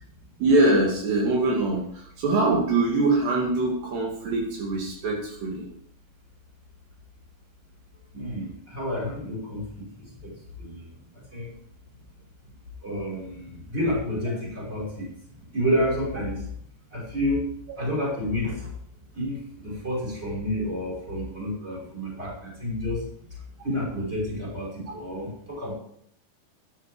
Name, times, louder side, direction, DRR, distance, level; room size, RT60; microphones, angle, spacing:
voice 1, 0.4-1.8 2.2-5.7, right 2 dB, 70° right, -2 dB, 4.5 m, -23 dB
voice 2, 8.1-10.3 10.6-10.8 11.3-11.5 12.8-15.1 15.5-16.5 16.9-17.5 17.8-18.7 19.1-23.0 23.6-25.7, equal, 15° right, -3 dB, 5.8 m, -29 dB
12.5 x 11.0 x 5.1 m, 0.67 s
omnidirectional pair, 5.1 m